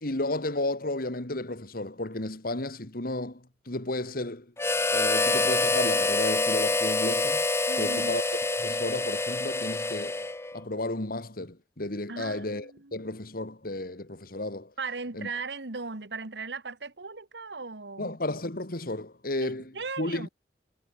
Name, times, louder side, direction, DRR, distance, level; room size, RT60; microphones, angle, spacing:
voice 1, 0.0-4.5 4.9-7.5 7.8-8.2 8.6-10.3 10.5-14.7 15.1-15.3 18.0-20.3, left 2 dB, 55° left, 2.2 m, -33 dB
Harmonica, 4.6-10.6, left 2 dB, 15° left, 0.7 m, -26 dB
voice 2, 7.7-8.2 12.1-13.0 14.8-18.2 19.4-20.3, right 4 dB, 80° right, 1.8 m, -37 dB
head